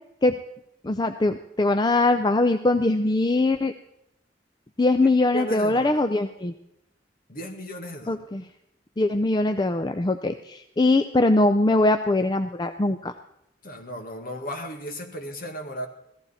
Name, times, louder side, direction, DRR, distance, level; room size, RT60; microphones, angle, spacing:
voice 1, 0.8-3.7 4.8-6.5 8.1-8.4 9.0-13.1, left 2 dB, 25° left, 8 dB, 0.5 m, -22 dB
voice 2, 5.3-6.0 7.3-8.2 13.6-15.9, equal, 50° left, 3 dB, 1.8 m, -35 dB
16.0 x 14.0 x 4.2 m, 0.80 s
head